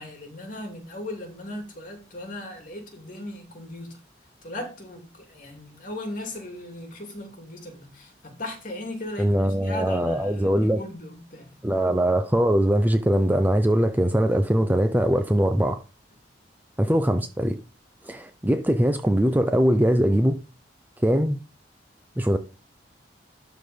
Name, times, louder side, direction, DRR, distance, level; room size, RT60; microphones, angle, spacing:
voice 1, 0.0-4.0 4.4-11.5, left 1 dB, 45° left, 2.7 m, -37 dB
voice 2, 9.2-10.8 11.6-15.8 16.8-17.6 18.1-20.4 21.0-21.4 22.2-22.4, equal, 10° right, 0.6 m, -21 dB
12.0 x 4.0 x 5.1 m
head